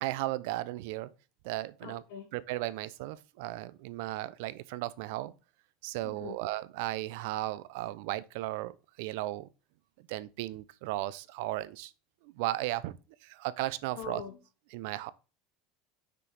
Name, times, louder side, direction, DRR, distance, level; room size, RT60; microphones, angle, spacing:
voice 1, 0.0-1.1 1.4-2.0 2.3-5.3 5.8-9.5 10.1-11.9 12.2-12.9 13.2-14.2 14.7-15.1, right 16 dB, 75° right, 0.6 m, -35 dB
voice 2, 1.8-2.3 6.0-6.4 14.0-14.4, left 7 dB, 85° left, 1.8 m, -42 dB
6.0 x 5.7 x 3.5 m
supercardioid pair, 125°, 0 cm